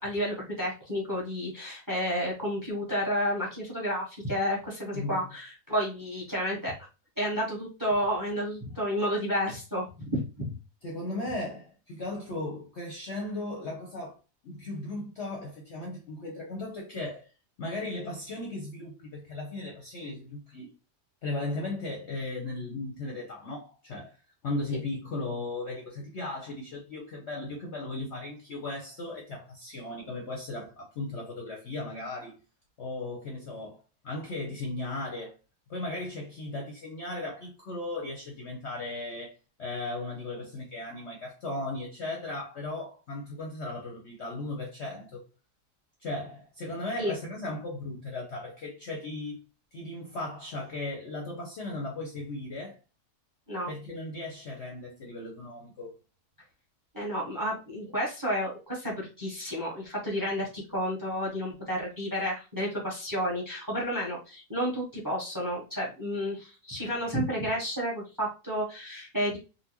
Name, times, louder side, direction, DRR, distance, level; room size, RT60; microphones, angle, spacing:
voice 1, 0.0-6.8 7.2-10.5 47.0-47.1 53.5-53.7 56.9-69.4, equal, 15° right, 0.8 m, -31 dB
voice 2, 10.8-14.2 14.4-17.3 17.6-20.7 21.2-32.3 32.8-35.3 35.7-39.3 39.6-45.2 46.0-49.4 49.7-52.8 53.7-55.9, left 2 dB, 55° left, 0.8 m, -36 dB
4.0 x 2.2 x 2.9 m
omnidirectional pair, 1.8 m